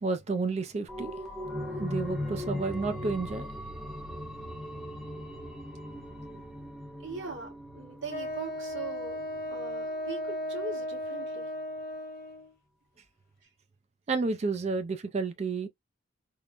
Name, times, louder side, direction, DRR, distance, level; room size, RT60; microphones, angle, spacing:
voice 1, 0.0-1.1 1.8-3.5 14.1-15.7, right 4 dB, 35° right, 0.3 m, -31 dB
sound 1, 0.9-10.2 10.6-10.7, left 1 dB, ahead, 0.7 m, -39 dB
voice 2, 7.0-9.2 9.5-11.5, right 3 dB, 75° right, 1.7 m, -40 dB
Wind instrument woodwind instrument, 8.1-12.5, equal, 50° left, 1.0 m, -36 dB
3.7 x 2.1 x 2.4 m
head